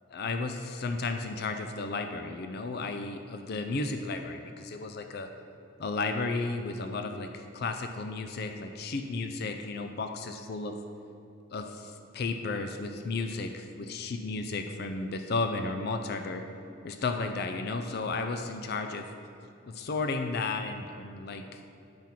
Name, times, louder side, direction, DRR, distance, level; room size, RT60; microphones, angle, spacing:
voice 1, 0.1-5.3 5.8-10.7 11.5-16.4 16.8-19.1 19.7-21.7, left 3 dB, 50° left, 6 dB, 0.4 m, -33 dB
8.6 x 6.0 x 4.4 m, 2.8 s
head